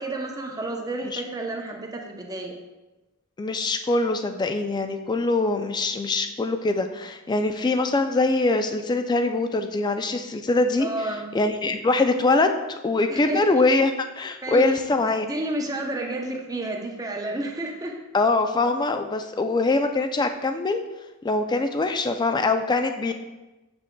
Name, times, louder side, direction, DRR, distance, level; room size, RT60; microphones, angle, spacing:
voice 1, 0.0-2.6 10.8-11.3 13.1-13.4 14.4-14.7 15.0-18.0, right 2 dB, 15° right, 1 dB, 0.6 m, -31 dB
voice 2, 3.4-10.9 11.3-15.3 18.1-20.8 21.2-23.1, left 3 dB, 20° left, 7 dB, 0.3 m, -23 dB
7.1 x 6.0 x 2.2 m, 1.1 s
head